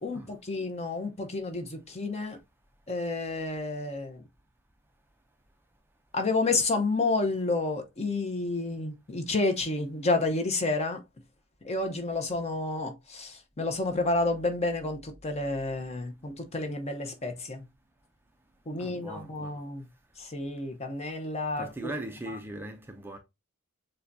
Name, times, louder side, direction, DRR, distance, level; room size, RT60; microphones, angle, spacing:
voice 1, 0.0-2.4 2.9-4.2 6.1-11.0 11.6-17.6 18.7-19.8 20.2-21.9, left 3 dB, 30° left, 0.8 m, -30 dB
voice 2, 18.7-19.6 21.6-23.2, right 1 dB, 10° right, 0.4 m, -39 dB
6.6 x 2.2 x 2.6 m
head